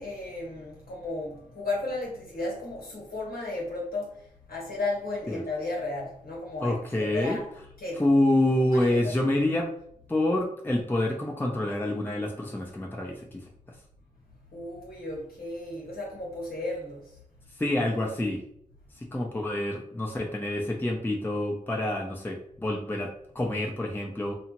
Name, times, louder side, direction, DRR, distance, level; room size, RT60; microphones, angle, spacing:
voice 1, 0.0-4.1 4.5-7.5 7.8-8.0 8.7-9.3 14.5-17.0, left 2 dB, 85° left, -3 dB, 1.0 m, -34 dB
voice 2, 6.6-7.4 8.0-9.7 10.1-13.4 17.6-18.4 19.0-24.3, left 1 dB, 15° left, -1 dB, 0.6 m, -27 dB
2.8 x 2.4 x 2.9 m, 0.69 s
cardioid pair, 40°, 15 cm